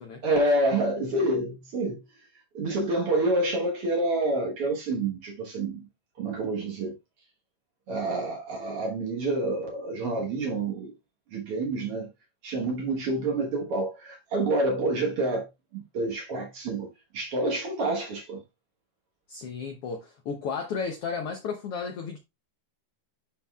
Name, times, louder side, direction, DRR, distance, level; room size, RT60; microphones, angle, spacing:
voice 1, 0.2-2.0 2.5-5.9 6.2-7.0 7.9-10.9 11.3-12.1 12.4-15.5 15.7-16.9 17.1-18.4, right 2 dB, 55° right, 1.8 m, -28 dB
voice 2, 19.3-22.2, left 5 dB, 75° left, 1.4 m, -33 dB
11.0 x 4.2 x 2.3 m
omnidirectional pair, 3.6 m